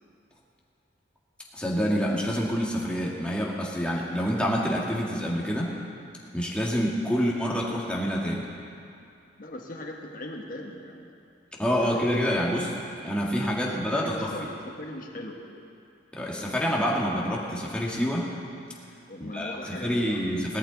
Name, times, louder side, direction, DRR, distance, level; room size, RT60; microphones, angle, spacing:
voice 1, 1.5-5.8 6.3-8.5 11.6-12.7 13.0-14.1 16.1-18.3 19.2-20.6, equal, 5° left, -4 dB, 1.8 m, -27 dB
voice 2, 9.4-11.1 11.8-12.4 13.8-15.4 19.1-20.4, left 1 dB, 50° left, 0 dB, 1.3 m, -39 dB
18.0 x 13.0 x 4.0 m, 2.6 s
head